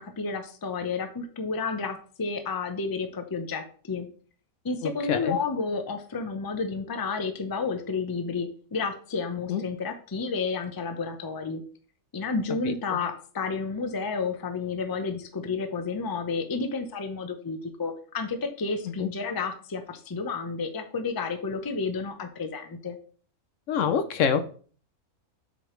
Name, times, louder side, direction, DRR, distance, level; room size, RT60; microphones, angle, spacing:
voice 1, 0.0-4.1 4.6-11.6 12.1-23.0, left 4 dB, 25° left, 7 dB, 0.5 m, -31 dB
voice 2, 4.8-5.4 9.5-9.6 12.6-12.7 19.0-19.1 23.7-24.4, left 7 dB, 70° left, 11 dB, 0.9 m, -26 dB
7.7 x 4.9 x 3.2 m, 0.43 s
omnidirectional pair, 1.5 m